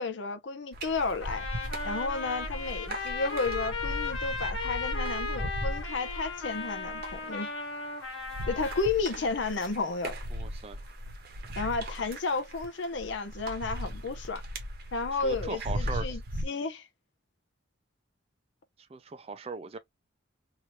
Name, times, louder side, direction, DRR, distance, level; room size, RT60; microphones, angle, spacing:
voice 1, 0.0-1.5 1.8-7.5 8.5-10.1 11.6-14.4 14.9-16.9, left 4 dB, 65° left, 0.6 m, -32 dB
sound 1, 0.7-16.5, equal, 50° right, 0.9 m, -37 dB
Trumpet, 1.2-8.9, left 3 dB, 90° left, 1.4 m, -36 dB
voice 2, 10.3-10.8 15.2-16.2 18.9-19.8, right 4 dB, 30° right, 0.4 m, -39 dB
3.0 x 2.6 x 2.9 m
head